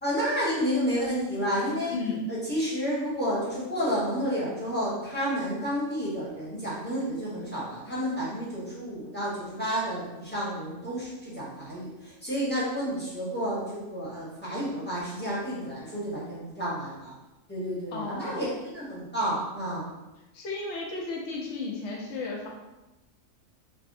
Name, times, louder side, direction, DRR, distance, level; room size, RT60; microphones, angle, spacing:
voice 1, 0.0-1.9 2.3-17.1 17.5-19.9, equal, 10° left, -9 dB, 0.7 m, -30 dB
voice 2, 1.9-2.2 17.9-18.4 20.3-22.5, left 3 dB, 65° left, -1 dB, 0.7 m, -34 dB
3.4 x 2.0 x 2.5 m, 1.0 s
omnidirectional pair, 1.5 m